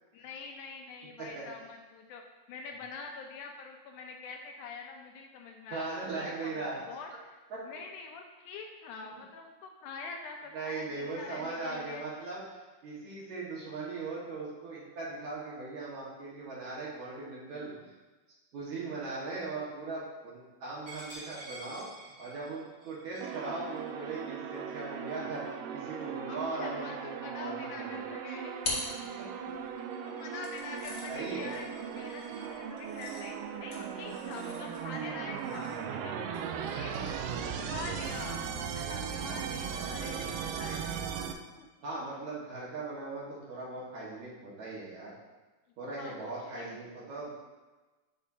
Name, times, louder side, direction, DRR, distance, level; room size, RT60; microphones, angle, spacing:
voice 1, 0.1-2.2 2.5-5.8 6.2-7.4 7.6-12.1 26.3-28.9 30.2-31.7 32.0-36.3 36.7-38.5 38.7-40.9 41.6-41.7 45.8-46.8, left 4 dB, 80° left, 3 dB, 2.0 m, -45 dB
voice 2, 5.7-6.8 7.5-7.6 9.0-9.2 10.5-12.4 12.8-17.9 18.5-21.9 22.2-25.4 25.7-28.0 28.9-29.4 31.1-31.5 40.1-40.2 40.7-40.8 41.8-45.1 45.8-47.3, right 3 dB, 65° right, -6 dB, 2.8 m, -39 dB
Coin (dropping), 20.9-26.3 26.7-27.0 27.4-32.5, right 1 dB, 30° right, 1.8 m, -52 dB
sound 1, 23.2-41.3, right 7 dB, 85° right, 2.1 m, -38 dB
sound 2, 27.9-29.7 30.4-38.0, left 3 dB, 50° left, 1.5 m, -44 dB
9.7 x 5.1 x 2.7 m, 1.2 s
omnidirectional pair, 3.7 m